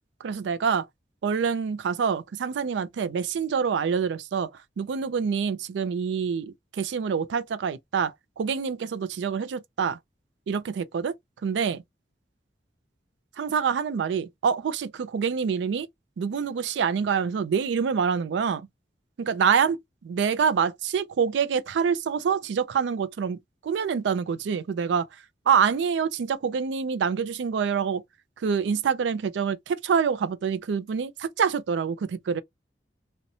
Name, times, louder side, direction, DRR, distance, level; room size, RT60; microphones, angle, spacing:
voice 1, 0.2-0.9 1.2-4.5 4.8-10.0 10.5-11.1 11.4-11.8 13.4-15.9 16.2-18.7 19.2-19.8 20.1-25.1 25.5-28.0 28.4-32.4, right 6 dB, 80° right, 0.3 m, -26 dB
2.7 x 2.1 x 2.6 m
head